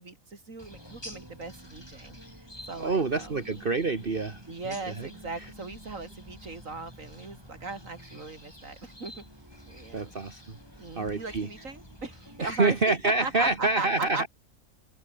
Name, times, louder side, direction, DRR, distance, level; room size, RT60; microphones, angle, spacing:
voice 1, 0.0-3.6 4.5-9.2 9.7-10.1 10.8-12.9 13.2-14.2, right 3 dB, 65° right, 3.8 m, -38 dB
sound 1, 0.6-12.8, left 1 dB, 15° left, 6.4 m, -51 dB
sound 2, 0.7-13.7, equal, 15° right, 7.8 m, -52 dB
voice 2, 2.8-5.1 5.4-5.5 9.9-10.6 10.9-11.5 12.4-14.3, right 3 dB, 40° right, 1.8 m, -27 dB
omnidirectional pair, 1.5 m